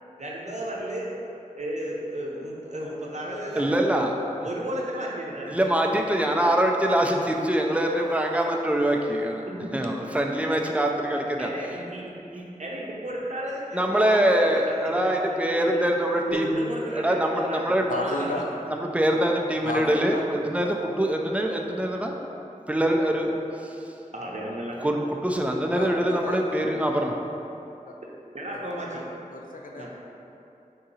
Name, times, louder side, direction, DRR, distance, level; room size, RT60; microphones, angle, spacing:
voice 1, 0.2-1.1 1.6-3.7 4.4-5.7 9.4-9.8 11.4-15.8 16.3-18.4 24.1-24.8 28.3-29.0 29.8-29.9, right 1 dB, 55° right, -3 dB, 0.7 m, -34 dB
voice 2, 3.6-4.1 5.5-9.4 9.7-11.5 13.7-16.5 16.9-17.8 18.9-20.1 20.5-22.2 22.7-23.4 24.8-27.1, right 1 dB, 10° right, 1 dB, 0.4 m, -24 dB
voice 3, 16.4-16.8 17.9-18.5 19.6-20.3 25.7-26.8 27.9-28.0 28.5-29.0 29.3-29.9, left 2 dB, 85° left, 0 dB, 0.4 m, -34 dB
3.7 x 2.7 x 4.1 m, 2.8 s
wide cardioid pair, 45°, 14 cm